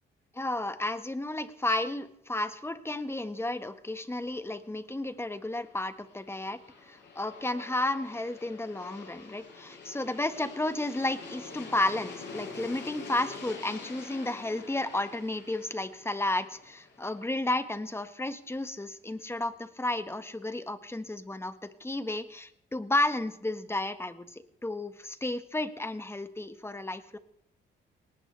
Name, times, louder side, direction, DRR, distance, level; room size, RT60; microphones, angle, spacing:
voice 1, 0.3-27.2, left 2 dB, 10° left, 10 dB, 1.5 m, -32 dB
Aircraft, 5.3-18.1, left 4 dB, 60° left, 6.5 m, -46 dB
19.5 x 18.5 x 3.4 m, 0.73 s
cardioid pair, 90°, 20 cm